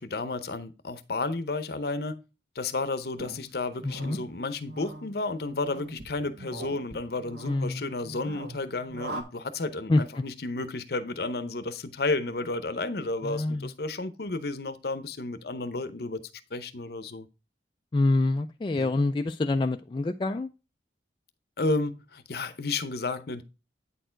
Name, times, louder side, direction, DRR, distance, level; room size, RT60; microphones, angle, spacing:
voice 1, 0.0-2.2 2.5-16.2 16.5-17.3 18.8-18.9 21.6-23.4, left 3 dB, 55° left, 0.7 m, -32 dB
sound 1, 3.2-9.2, right 2 dB, 60° right, 1.4 m, -43 dB
voice 2, 3.8-4.2 7.5-7.9 9.9-10.2 13.2-13.7 17.9-20.5, left 2 dB, 25° left, 0.3 m, -26 dB
8.9 x 4.4 x 4.4 m
head